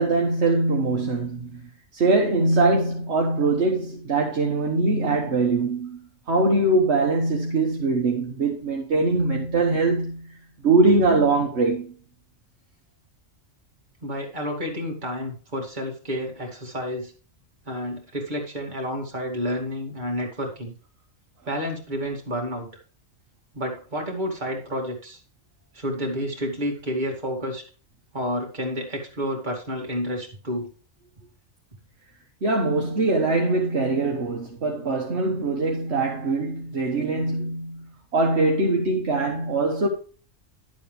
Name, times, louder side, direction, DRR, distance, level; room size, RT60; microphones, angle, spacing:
voice 1, 0.0-1.6 1.9-6.0 6.3-10.4 10.6-11.9 32.4-39.9, right 3 dB, 60° right, 1.5 m, -22 dB
voice 2, 14.0-17.1 17.6-20.7 21.5-22.7 23.5-25.2 25.7-27.6 28.1-30.7, equal, 35° right, 2.6 m, -30 dB
11.0 x 7.7 x 3.3 m
omnidirectional pair, 1.3 m